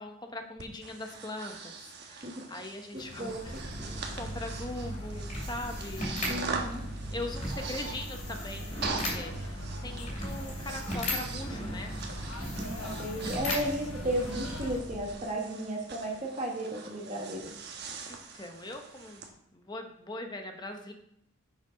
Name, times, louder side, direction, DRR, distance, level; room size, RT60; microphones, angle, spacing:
voice 1, 0.0-3.3 3.9-6.6 7.1-11.9 13.2-13.7 18.1-19.3 19.5-20.9, left 2 dB, 20° left, 4 dB, 0.9 m, -41 dB
Breathing, 0.6-19.3, right 4 dB, 50° right, 1.1 m, -43 dB
sound 1, 2.9-14.8, left 2 dB, 85° left, 1.0 m, -46 dB
sound 2, 3.2-15.2, equal, 35° left, 2.6 m, -37 dB
voice 2, 6.2-6.8 12.5-17.5, right 1 dB, 35° right, -1 dB, 1.2 m, -34 dB
6.6 x 6.1 x 5.1 m, 0.73 s
head